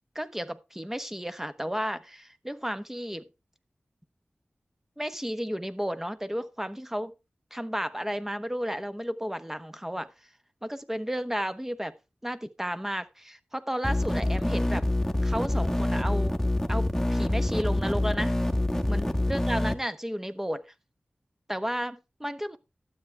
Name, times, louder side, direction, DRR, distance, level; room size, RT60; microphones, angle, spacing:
voice 1, 0.1-3.3 5.0-7.1 7.5-10.1 10.6-11.9 12.2-14.9 15.2-16.4 16.7-18.4 18.9-20.6 21.5-22.6, equal, 10° right, 1.0 m, -33 dB
sound 1, 13.8-19.7, left 1 dB, 10° left, 1.2 m, -26 dB
12.5 x 8.7 x 3.3 m
wide cardioid pair, 60°, 4 cm